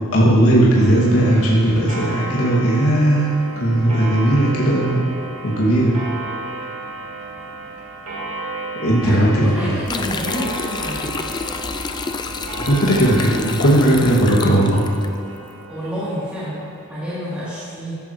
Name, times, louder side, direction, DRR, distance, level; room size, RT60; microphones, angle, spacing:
voice 1, 0.1-5.1 5.4-6.0 8.8-9.8 12.6-14.8, right 1 dB, 75° left, -6 dB, 2.4 m, -16 dB
Clock, 0.7-16.9, right 2 dB, 80° right, 2.3 m, -33 dB
voice 2, 9.0-11.4 15.7-18.0, equal, 5° right, -12 dB, 3.3 m, -29 dB
sound 1, 9.9-15.1, left 4 dB, 20° left, 0.4 m, -29 dB
13.5 x 13.0 x 3.2 m, 2.6 s
head